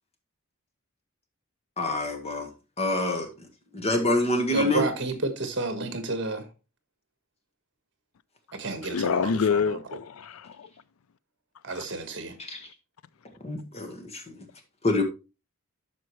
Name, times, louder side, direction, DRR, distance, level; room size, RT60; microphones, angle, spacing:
voice 1, 1.8-2.5 2.8-3.5 3.7-4.9 12.4-12.6 13.4-14.5 14.8-15.0, left 1 dB, 30° left, 1.6 m, -26 dB
voice 2, 4.5-6.5 8.5-10.0 11.6-12.4, right 2 dB, 55° right, 1.5 m, -31 dB
voice 3, 8.9-10.7, left 6 dB, 80° left, 0.4 m, -26 dB
12.5 x 5.0 x 3.2 m
head